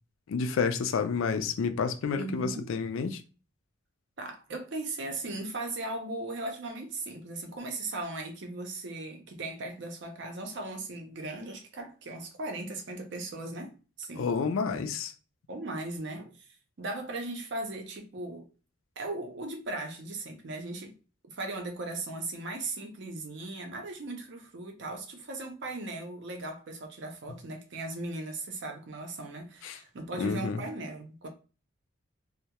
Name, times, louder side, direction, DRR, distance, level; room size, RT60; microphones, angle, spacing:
voice 1, 0.3-3.2 14.2-15.1 29.6-29.8 30.2-30.6, left 5 dB, 70° left, 0.4 m, -29 dB
voice 2, 2.1-2.7 4.2-13.7 14.0-14.3 15.5-16.5 16.8-18.5 19.0-21.0 21.3-31.3, right 2 dB, 55° right, 0.5 m, -38 dB
2.2 x 2.0 x 2.8 m
head